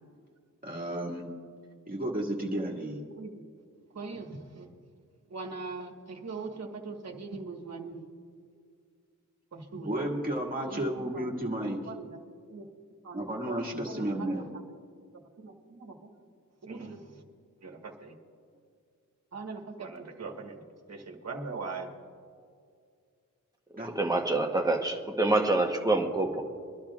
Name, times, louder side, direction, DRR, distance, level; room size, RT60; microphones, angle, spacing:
voice 1, 0.6-1.3 1.9-3.0 9.8-11.9 13.1-14.4 23.8-24.0, right 1 dB, 25° right, -2 dB, 2.0 m, -32 dB
voice 2, 3.9-4.7 5.3-8.0 9.5-9.9 10.7-11.3 11.6-12.2 12.5-12.7 13.0-14.6 15.4-16.1 16.6-17.2 17.6-18.2 19.3-21.9, right 4 dB, 55° right, 1 dB, 1.5 m, -41 dB
voice 3, 24.0-26.4, right 2 dB, 10° right, 2 dB, 1.0 m, -26 dB
23.5 x 12.0 x 2.4 m, 2.2 s
wide cardioid pair, 130°, 32 cm